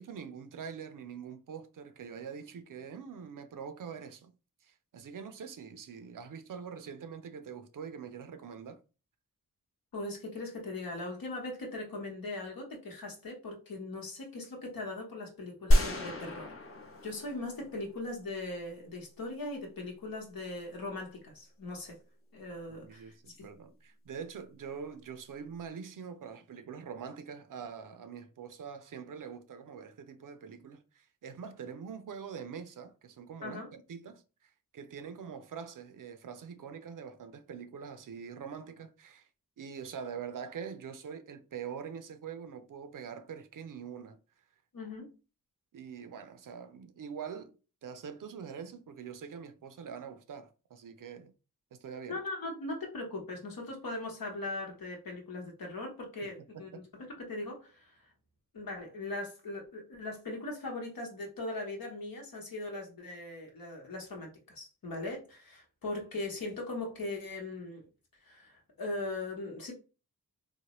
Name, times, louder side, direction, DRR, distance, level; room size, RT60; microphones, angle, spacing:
voice 1, 0.0-4.3 4.6-8.8 22.8-39.3 39.6-44.2 45.7-47.5 47.8-51.3 51.7-52.2 56.5-56.8, right 7 dB, 65° right, 0.5 m, -44 dB
voice 2, 9.9-16.5 17.0-22.0 22.3-23.5 33.4-33.7 44.7-45.1 52.1-57.9 58.5-67.9 68.2-69.7, left 2 dB, 75° left, 1.0 m, -40 dB
sound 1, 15.7-18.0, equal, 40° left, 0.8 m, -29 dB
3.1 x 2.1 x 2.9 m
cardioid pair, 45°, 35 cm